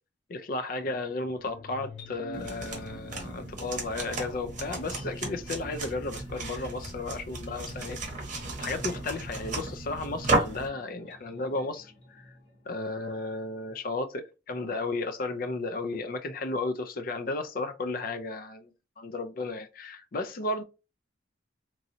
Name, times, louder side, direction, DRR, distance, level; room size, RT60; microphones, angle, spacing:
voice 1, 0.3-8.0 8.6-12.3 12.7-18.7 19.0-20.6, left 3 dB, 45° left, 0.5 m, -34 dB
sound 1, 0.7-12.9, left 1 dB, 60° left, 1.0 m, -48 dB
sound 2, 2.3-10.7, right 2 dB, 40° right, 1.1 m, -34 dB
3.0 x 2.6 x 2.7 m
head